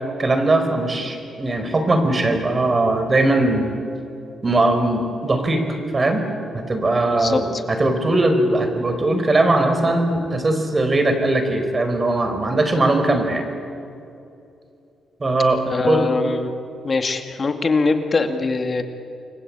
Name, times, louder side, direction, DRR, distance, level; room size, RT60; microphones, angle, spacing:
voice 1, 0.2-3.8 4.4-5.6 5.9-6.2 6.5-13.4 15.2-15.6 15.9-16.1, right 2 dB, 30° right, 7 dB, 4.7 m, -20 dB
voice 2, 7.0-7.6 15.7-16.5 16.8-18.8, left 3 dB, 35° left, 6 dB, 2.2 m, -22 dB
29.0 x 22.5 x 8.9 m, 2.7 s
cardioid pair, 95°, 0 cm